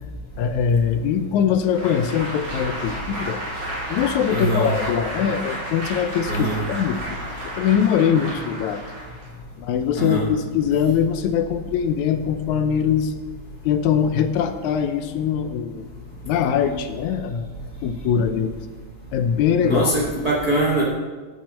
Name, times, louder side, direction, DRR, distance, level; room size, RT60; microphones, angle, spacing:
voice 1, 0.4-3.4 3.9-8.8 9.6-13.1 13.7-15.9 16.3-17.5 17.8-18.5 19.1-19.9, left 8 dB, 75° left, 9 dB, 1.9 m, -22 dB
Applause, 1.6-9.4, right 1 dB, 40° right, 4.2 m, -32 dB
voice 2, 4.3-4.7 6.3-6.6 10.0-10.2 19.6-20.8, right 1 dB, 55° right, -3 dB, 1.0 m, -22 dB
10.5 x 6.3 x 7.2 m, 1.3 s
omnidirectional pair, 3.6 m